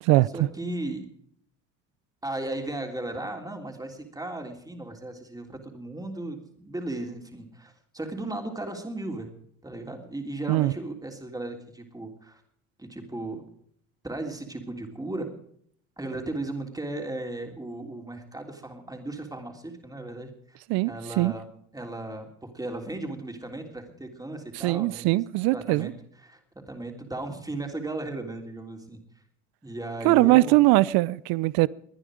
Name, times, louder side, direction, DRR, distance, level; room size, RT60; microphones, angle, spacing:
voice 1, 0.3-1.1 2.2-9.3 9.6-12.4 12.8-13.4 14.0-15.3 16.0-20.6 20.8-21.5 21.7-25.0 25.5-25.9 26.2-29.0 29.6-30.6, right 2 dB, 10° right, 3.3 m, -36 dB
voice 2, 20.7-21.3 24.5-25.9 30.0-31.7, right 20 dB, 65° right, 0.6 m, -21 dB
22.5 x 9.8 x 5.0 m
hypercardioid pair, 75°, 40 cm